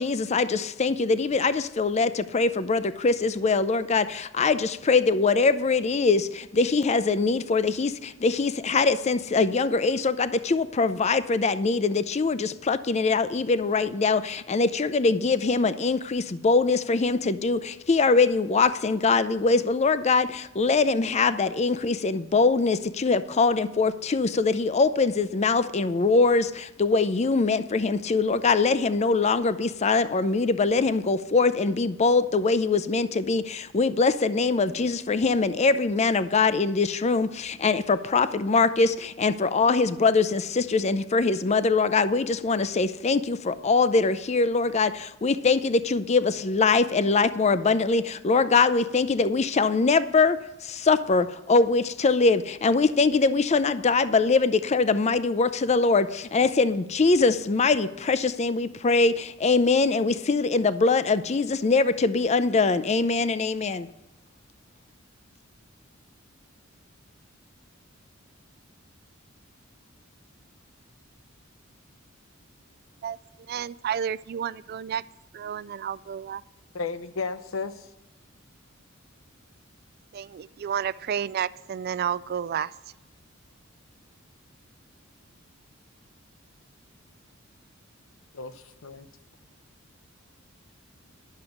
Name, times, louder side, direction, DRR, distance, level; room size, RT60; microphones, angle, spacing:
voice 1, 0.0-63.9, left 4 dB, 35° left, 13 dB, 0.5 m, -23 dB
voice 2, 73.5-75.0 75.3-76.4 80.1-82.7, right 8 dB, 50° right, 18 dB, 0.3 m, -31 dB
voice 3, 76.7-77.9 88.3-89.1, left 4 dB, 85° left, 10 dB, 0.7 m, -33 dB
11.0 x 6.5 x 7.1 m, 0.99 s
head